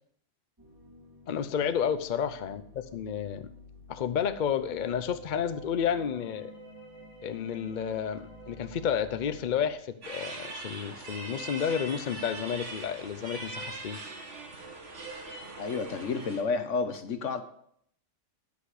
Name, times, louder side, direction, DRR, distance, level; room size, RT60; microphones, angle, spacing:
sound 1, 0.6-9.7, equal, 15° right, 1.9 m, -50 dB
voice 1, 1.3-3.5 3.9-6.5 7.2-14.0, left 8 dB, 50° left, 11 dB, 0.7 m, -31 dB
sound 2, 10.0-16.4, right 3 dB, 70° right, 1.9 m, -41 dB
voice 2, 15.6-17.4, left 4 dB, 80° left, 9 dB, 1.3 m, -30 dB
10.0 x 8.4 x 4.9 m, 0.67 s
omnidirectional pair, 1.3 m